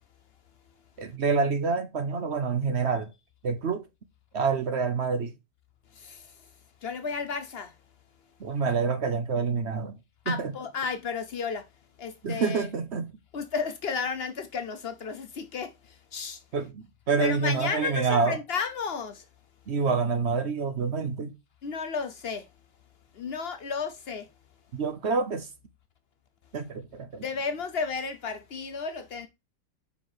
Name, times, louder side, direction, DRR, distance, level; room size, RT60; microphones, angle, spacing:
voice 1, 1.0-3.1 3.4-3.9 4.3-5.3 8.4-10.0 10.3-10.5 12.2-13.1 16.5-18.4 19.7-21.3 24.7-25.5 26.5-27.2, right 5 dB, 55° right, 0.8 m, -27 dB
voice 2, 5.9-6.5 6.8-7.7 10.3-11.7 12.0-12.7 13.3-16.4 17.2-19.2 21.6-22.5 23.1-24.3 27.2-29.3, left 5 dB, 60° left, 0.6 m, -33 dB
5.5 x 4.9 x 4.4 m
omnidirectional pair, 1.9 m